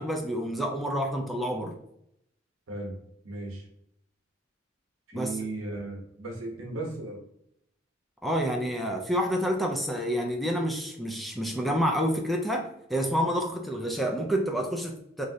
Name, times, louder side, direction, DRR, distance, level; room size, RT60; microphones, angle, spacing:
voice 1, 0.0-1.7 5.1-5.4 8.2-15.2, equal, ahead, 1 dB, 0.3 m, -28 dB
voice 2, 3.2-3.7 5.1-7.2, right 2 dB, 85° right, 0 dB, 0.9 m, -36 dB
3.1 x 2.5 x 2.7 m, 0.76 s
head